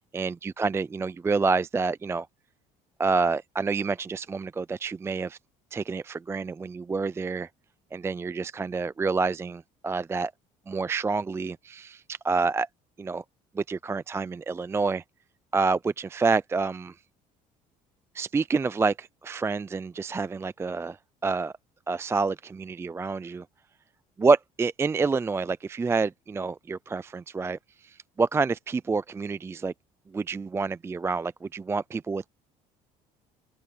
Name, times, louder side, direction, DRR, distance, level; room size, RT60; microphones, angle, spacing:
voice 1, 0.1-2.3 3.0-5.4 5.7-7.5 7.9-10.3 10.7-12.7 13.0-13.2 13.6-15.0 15.5-16.9 18.1-21.0 21.2-21.5 21.9-23.5 24.2-29.7 30.1-32.3, right 4 dB, 15° right, 0.4 m, -28 dB
open air
cardioid pair, 100°, 15 cm